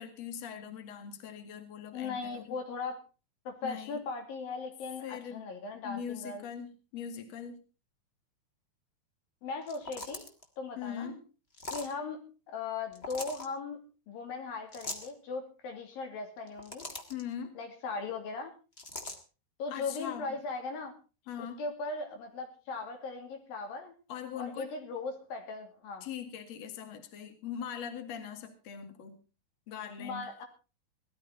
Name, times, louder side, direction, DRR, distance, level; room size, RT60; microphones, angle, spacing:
voice 1, 0.0-2.6 3.6-4.0 5.0-5.4 5.8-7.6 10.8-11.2 17.1-17.5 19.7-20.4 21.3-21.6 24.1-24.7 26.0-29.2 29.7-30.4, left 8 dB, 50° left, 6 dB, 2.9 m, -41 dB
voice 2, 1.9-3.0 3.5-6.4 9.4-10.3 10.6-11.1 11.7-12.2 12.5-16.9 17.6-18.5 19.6-20.9 21.4-23.9 24.4-26.1 30.0-30.5, left 4 dB, 85° left, 4 dB, 4.6 m, -38 dB
sound 1, 9.6-10.4 11.5-11.9 12.9-13.5 14.7-15.1 16.4-17.2 18.8-19.2, left 2 dB, 35° left, 0.9 m, -41 dB
18.0 x 13.0 x 4.0 m, 0.33 s
omnidirectional pair, 4.0 m